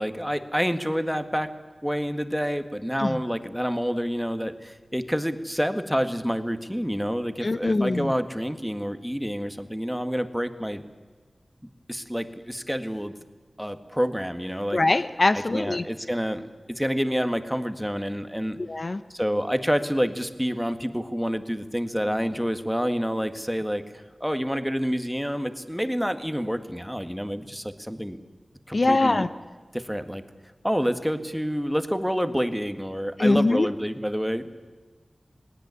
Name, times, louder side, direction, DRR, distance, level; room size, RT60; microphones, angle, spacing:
voice 1, 0.0-1.5 1.8-10.8 11.9-13.1 13.6-14.8 15.3-18.6 19.1-28.2 28.7-29.3 29.7-30.2 30.6-34.6, equal, ahead, 9 dB, 1.8 m, -28 dB
voice 2, 7.4-8.1 14.7-15.8 18.7-19.0 28.7-29.3 33.2-33.7, left 2 dB, 55° left, 11 dB, 0.9 m, -22 dB
19.0 x 18.0 x 9.7 m, 1.4 s
cardioid pair, 40°, 0 cm